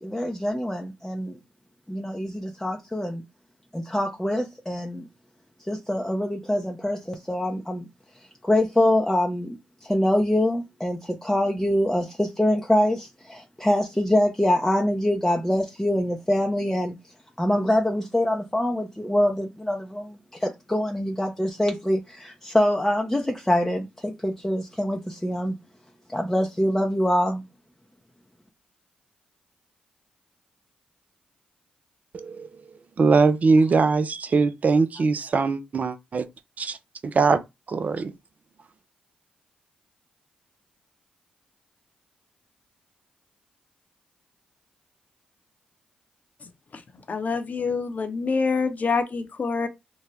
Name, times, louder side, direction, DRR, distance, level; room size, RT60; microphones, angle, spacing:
voice 1, 0.0-1.4 1.9-3.2 3.7-5.1 5.7-7.8 8.4-16.9 17.4-25.6 26.1-27.4, left 1 dB, 10° left, 0.6 m, -24 dB
voice 2, 32.1-32.5 33.0-36.2 36.6-36.8 37.0-37.4 37.7-38.1, right 4 dB, 45° right, 0.5 m, -21 dB
voice 3, 47.1-49.7, left 4 dB, 45° left, 0.8 m, -26 dB
2.7 x 2.2 x 3.2 m
hypercardioid pair, 40°, 4 cm